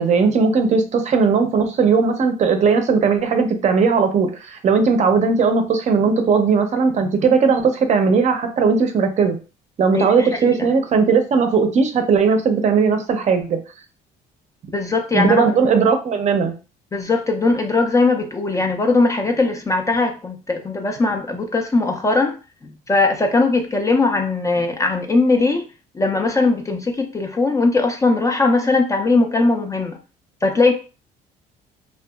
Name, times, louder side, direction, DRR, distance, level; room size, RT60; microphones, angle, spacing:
voice 1, 0.0-9.4 9.8-13.6 15.1-16.5, right 5 dB, 45° right, 6 dB, 0.5 m, -17 dB
voice 2, 9.9-10.7 14.7-15.8 16.9-22.4 22.9-25.6 25.9-30.0 30.4-30.7, left 3 dB, 20° left, 4 dB, 0.3 m, -19 dB
2.7 x 2.2 x 2.3 m, 0.33 s
cardioid pair, 110°, 17 cm